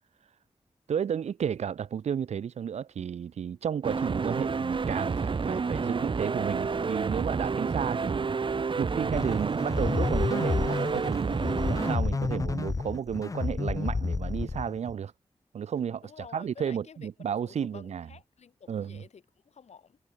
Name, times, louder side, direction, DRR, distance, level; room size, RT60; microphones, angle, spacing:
voice 1, 0.9-8.3 8.8-15.1 15.5-18.1 18.7-19.0, right 8 dB, 85° right, 0.6 m, -32 dB
sound 1, 3.8-12.0, right 4 dB, 50° right, 0.6 m, -29 dB
sound 2, 9.1-14.9, left 4 dB, 30° left, 0.4 m, -30 dB
voice 2, 16.0-17.1 17.5-20.0, left 6 dB, 90° left, 3.8 m, -51 dB
cardioid pair, 45°, 11 cm